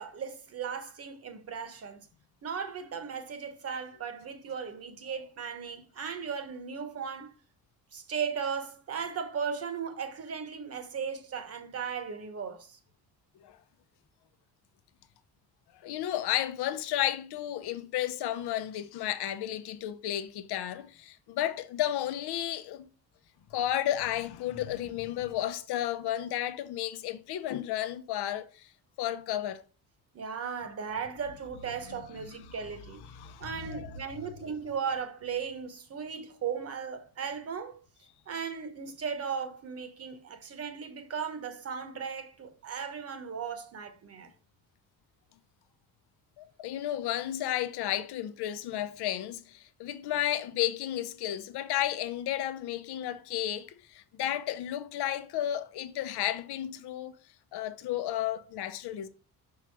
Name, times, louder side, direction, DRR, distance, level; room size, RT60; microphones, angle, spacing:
voice 1, 0.0-2.1 2.4-7.3 7.9-12.8 30.1-33.0 33.4-37.8 38.3-44.3, right 6 dB, 40° right, 1.0 m, -37 dB
voice 2, 15.8-22.9 23.5-28.7 29.0-29.6 33.1-34.0 46.4-57.2 57.5-59.1, left 12 dB, 85° left, 0.8 m, -33 dB
6.2 x 4.8 x 4.6 m
cardioid pair, 165°, 38 cm